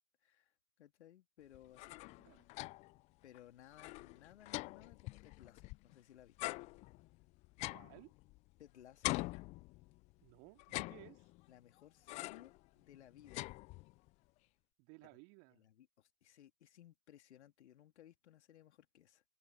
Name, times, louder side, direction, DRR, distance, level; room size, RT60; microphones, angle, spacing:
voice 1, 0.2-2.0 3.2-6.7 8.6-9.2 11.5-13.5 15.0-15.1 15.6-19.2, left 11 dB, 65° left, 2.8 m, -61 dB
sound 1, 1.5-3.0 3.3-3.4 3.7-5.9 6.4-8.6 9.0-10.1 10.6-11.5 12.1-12.6 12.9-14.1, left 22 dB, 20° left, 0.4 m, -44 dB
voice 2, 7.7-8.1 10.2-11.3 14.8-15.6, right 32 dB, 40° right, 2.6 m, -59 dB
figure-of-eight pair, 100°, 37 cm